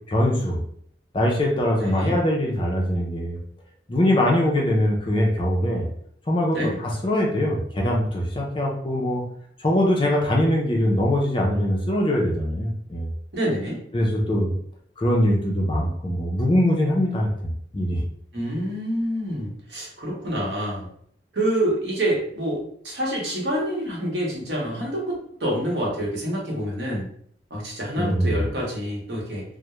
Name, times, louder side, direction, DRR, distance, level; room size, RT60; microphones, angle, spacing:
voice 1, 0.1-0.6 1.1-3.4 3.9-5.9 6.3-6.7 7.0-9.2 9.6-13.1 13.9-14.5 15.0-17.3 17.7-18.0 28.0-28.4, left 1 dB, 25° left, -1 dB, 0.4 m, -22 dB
voice 2, 1.8-2.2 6.5-6.8 13.3-13.8 18.3-20.9 21.3-27.1 27.5-29.4, right 1 dB, 65° right, -3 dB, 0.9 m, -27 dB
2.3 x 2.0 x 2.9 m, 0.64 s
head